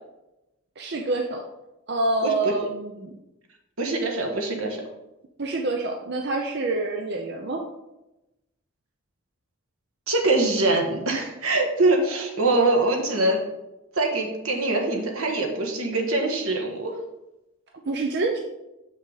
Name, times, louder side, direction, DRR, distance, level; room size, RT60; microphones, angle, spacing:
voice 1, 0.8-1.4 1.9-3.2 5.4-7.6 17.9-18.4, right 2 dB, 50° right, 2 dB, 0.6 m, -26 dB
voice 2, 3.8-4.8 10.1-13.4 13.9-17.0, right 2 dB, 80° right, 2 dB, 1.4 m, -23 dB
6.8 x 6.3 x 4.0 m, 0.95 s
head